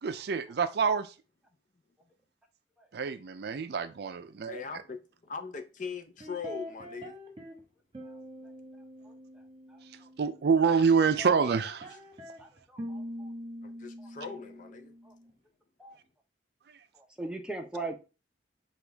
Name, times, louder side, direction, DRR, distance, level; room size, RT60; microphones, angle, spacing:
voice 1, 0.0-1.1 2.9-4.6 10.2-12.0, right 5 dB, 65° right, 0.4 m, -27 dB
voice 2, 4.5-7.2 11.4-11.6 13.6-14.9, left 5 dB, 45° left, 0.6 m, -40 dB
sound 1, 6.2-7.6 7.9-10.7 10.9-15.3, left 1 dB, 30° right, 1.1 m, -44 dB
voice 3, 12.4-13.3 14.0-14.1 15.0-15.1 15.8-16.0 16.9-17.9, right 2 dB, 5° right, 0.7 m, -40 dB
6.1 x 2.4 x 3.4 m
head